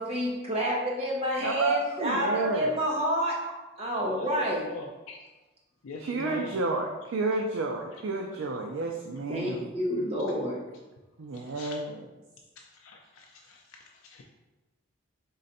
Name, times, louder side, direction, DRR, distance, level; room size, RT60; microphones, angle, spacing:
voice 1, 0.0-3.3 3.8-4.7 9.3-10.6, equal, 30° right, -3 dB, 0.9 m, -29 dB
voice 2, 1.4-2.7 6.0-9.7 11.2-12.0, right 3 dB, 75° right, 2 dB, 0.4 m, -31 dB
voice 3, 4.6-5.2 5.8-6.6 11.5-11.8 12.8-13.8 14.0-14.2, left 3 dB, 80° left, 1 dB, 0.4 m, -42 dB
3.9 x 3.2 x 4.0 m, 1.1 s
head